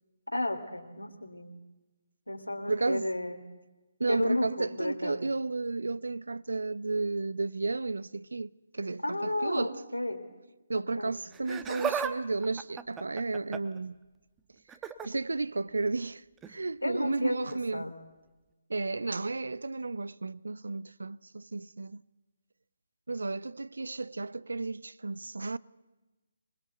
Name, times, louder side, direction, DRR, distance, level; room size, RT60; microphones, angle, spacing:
voice 1, 0.3-1.6 2.3-3.4 4.1-5.2 9.0-10.2 10.7-11.1 16.8-17.9, left 1 dB, 90° left, 3.0 m, -32 dB
voice 2, 2.7-3.1 4.0-9.7 10.7-14.0 15.0-16.2 16.5-17.9 18.7-22.0 23.1-25.6, right 3 dB, 70° right, 0.7 m, -33 dB
Laughter, 11.3-12.1 12.4-13.8 14.7-15.1 16.4-16.6 17.5-17.6, right 7 dB, 15° right, 1.1 m, -35 dB
25.5 x 21.0 x 8.0 m
figure-of-eight pair, 140°, 0 cm